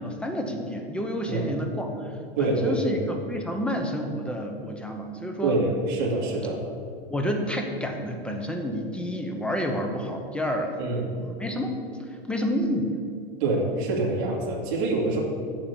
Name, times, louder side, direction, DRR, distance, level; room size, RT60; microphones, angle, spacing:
voice 1, 0.0-2.1 2.4-5.6 7.1-10.8 11.2-11.7 12.3-13.0, equal, 5° left, 3 dB, 0.8 m, -29 dB
voice 2, 2.4-3.0 5.4-6.6 10.8-11.1 13.4-15.2, right 2 dB, 50° right, -3 dB, 2.1 m, -25 dB
7.8 x 7.3 x 7.0 m, 2.4 s
supercardioid pair, 150°, 29 cm